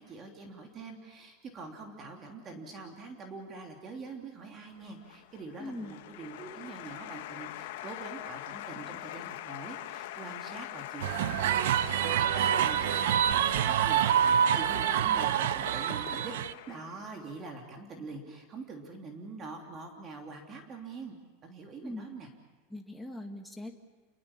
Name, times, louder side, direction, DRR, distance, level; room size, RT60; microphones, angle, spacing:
voice 1, 0.0-11.4 11.8-16.3 16.7-21.2 21.4-22.3, right 3 dB, 25° right, 2 dB, 3.1 m, -44 dB
Applause, 4.8-17.2, left 14 dB, 65° left, 1.3 m, -42 dB
voice 2, 5.6-6.0 21.8-22.1 22.7-23.7, left 1 dB, ahead, 2 dB, 1.7 m, -41 dB
sound 1, 11.0-16.5, right 10 dB, 75° right, 0.7 m, -27 dB
28.5 x 21.5 x 7.3 m, 1.3 s
supercardioid pair, 150°, 0 cm